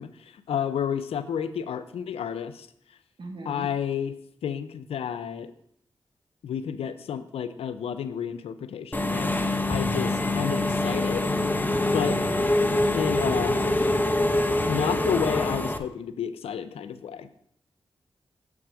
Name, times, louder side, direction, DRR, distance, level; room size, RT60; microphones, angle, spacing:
voice 1, 0.0-2.7 3.5-4.1 4.4-5.5 6.4-9.3 9.7-11.3 11.9-12.2 12.9-13.6 14.7-17.3, left 8 dB, 90° left, 12 dB, 0.5 m, -30 dB
voice 2, 3.2-3.7 11.9-12.3, right 2 dB, 60° right, 2 dB, 1.8 m, -37 dB
Engine / Mechanisms, 8.9-15.8, left 2 dB, 20° left, 0.8 m, -25 dB
7.6 x 6.1 x 4.8 m, 0.70 s
cardioid pair, 45°, 10 cm